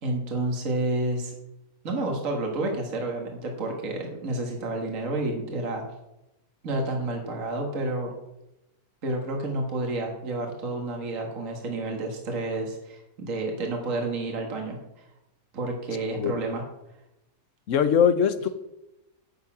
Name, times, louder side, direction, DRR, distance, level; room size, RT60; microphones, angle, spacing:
voice 1, 0.0-1.3 1.8-5.8 6.6-8.1 9.0-15.0 15.5-16.6, right 2 dB, 55° right, 1 dB, 2.1 m, -30 dB
voice 2, 17.7-18.5, left 7 dB, 60° left, 12 dB, 1.1 m, -21 dB
10.5 x 8.3 x 6.1 m, 0.90 s
omnidirectional pair, 1.7 m